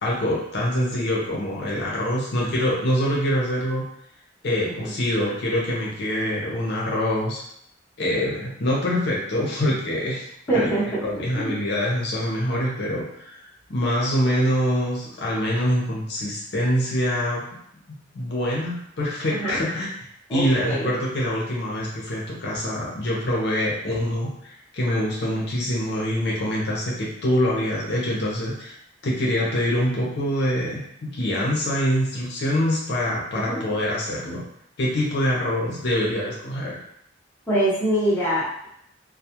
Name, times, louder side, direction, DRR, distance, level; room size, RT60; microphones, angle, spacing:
voice 1, 0.0-3.8 4.4-7.4 8.0-10.2 10.5-10.7 11.0-13.4 13.7-17.4 18.1-19.9 20.3-28.7 29.0-34.4 34.8-36.8, equal, 65° left, -4 dB, 0.6 m, -25 dB
voice 2, 10.5-11.0 11.4-11.6 19.3-19.6 20.3-20.9 33.3-33.6 37.5-38.7, right 1 dB, 10° left, -10 dB, 0.8 m, -24 dB
2.2 x 2.0 x 2.8 m, 0.71 s
head